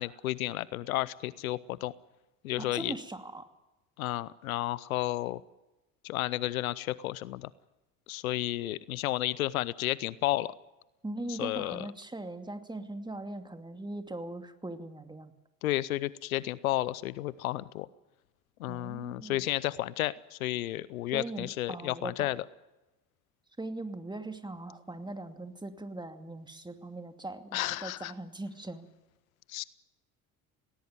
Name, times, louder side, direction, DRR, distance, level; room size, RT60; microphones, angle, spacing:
voice 1, 0.0-1.9 2.4-2.9 4.0-5.4 6.0-7.5 8.1-10.5 11.3-11.9 15.6-17.9 18.6-22.4 27.5-28.1 29.5-29.6, left 16 dB, 85° left, 21 dB, 0.7 m, -32 dB
voice 2, 2.6-3.5 11.0-15.3 18.7-19.5 21.1-22.3 23.6-28.9, right 2 dB, 10° right, 7 dB, 2.5 m, -40 dB
18.5 x 18.5 x 9.6 m, 1.0 s
hypercardioid pair, 55°, 41 cm